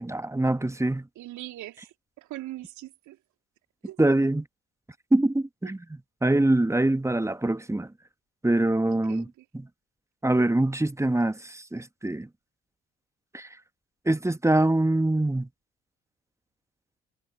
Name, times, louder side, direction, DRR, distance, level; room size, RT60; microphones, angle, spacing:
voice 1, 0.0-1.1 4.0-4.5 5.1-5.8 6.2-7.9 8.4-9.3 9.5-9.7 10.2-12.3 13.3-13.5 14.0-15.5, right 1 dB, 10° right, 1.6 m, -24 dB
voice 2, 1.2-3.2 3.8-4.0 5.6-5.7 9.1-9.4, right 16 dB, 60° right, 2.9 m, -41 dB
figure-of-eight pair, 45°, 33 cm